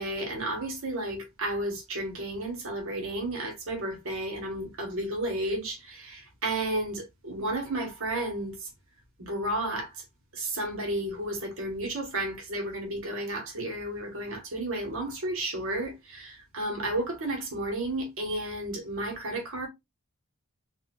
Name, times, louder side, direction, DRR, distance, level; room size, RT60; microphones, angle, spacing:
voice 1, 0.0-8.7 9.2-9.9 10.3-19.7, right 1 dB, 65° right, 1.1 m, -32 dB
4.1 x 2.2 x 2.3 m
head